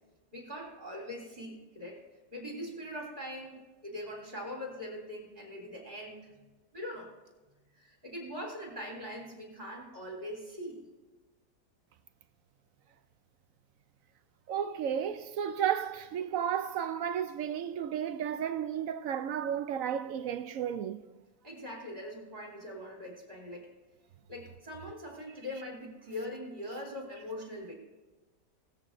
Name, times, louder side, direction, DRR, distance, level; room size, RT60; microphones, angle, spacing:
voice 1, 0.3-2.0 2.3-6.3 6.7-7.1 7.7-10.9 21.4-23.7 24.3-27.7, left 1 dB, 30° right, 3.4 m, -42 dB
voice 2, 14.5-21.0, right 9 dB, 70° right, 0.8 m, -33 dB
17.5 x 14.0 x 2.6 m
omnidirectional pair, 1.7 m